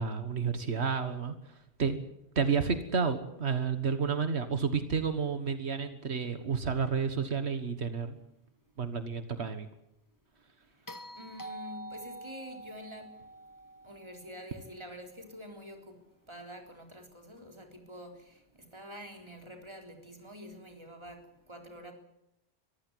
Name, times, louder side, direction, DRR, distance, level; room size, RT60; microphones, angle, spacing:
voice 1, 0.0-2.0 2.3-8.2 8.8-9.7, right 5 dB, 80° right, 10 dB, 1.7 m, -31 dB
sound 1, 10.9-15.1 17.4-17.5, right 1 dB, 20° left, 1.2 m, -47 dB
voice 2, 11.1-13.2 13.8-16.0 16.3-21.9, equal, 25° right, 4 dB, 3.9 m, -47 dB
23.5 x 15.5 x 9.4 m, 0.83 s
omnidirectional pair, 1.1 m